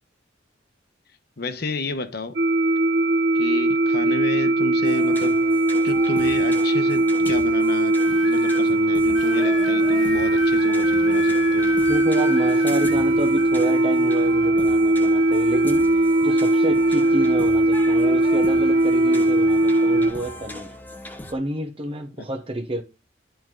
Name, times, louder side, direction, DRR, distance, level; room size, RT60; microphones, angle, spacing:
voice 1, 1.4-2.4 3.3-5.4 5.8-11.8 22.2-22.3, left 2 dB, 55° left, 1.0 m, -31 dB
sound 1, 2.4-20.1, right 2 dB, 65° right, 0.8 m, -19 dB
sound 2, 4.8-21.3, left 1 dB, 10° left, 0.8 m, -39 dB
sound 3, 7.9-8.6 9.1-14.7 15.0-17.7 18.0-20.5 21.3-21.6, left 5 dB, 75° left, 0.9 m, -36 dB
voice 2, 11.9-20.7 21.3-22.8, right 1 dB, 30° right, 0.9 m, -29 dB
10.5 x 4.6 x 3.7 m
head